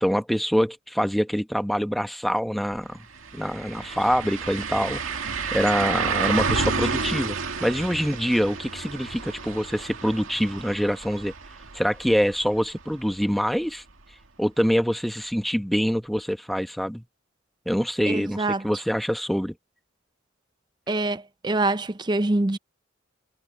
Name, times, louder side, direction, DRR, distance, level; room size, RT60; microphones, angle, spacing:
voice 1, 0.0-3.0 3.3-11.3 11.7-13.8 14.4-17.0 17.6-19.5, equal, ahead, 1.2 m, -25 dB
sound 1, 2.7-2.8 3.1-12.9 13.3-13.4 16.2-16.3, right 5 dB, 80° right, 2.1 m, -30 dB
voice 2, 18.1-18.6 20.9-22.6, right 2 dB, 20° right, 0.5 m, -25 dB
head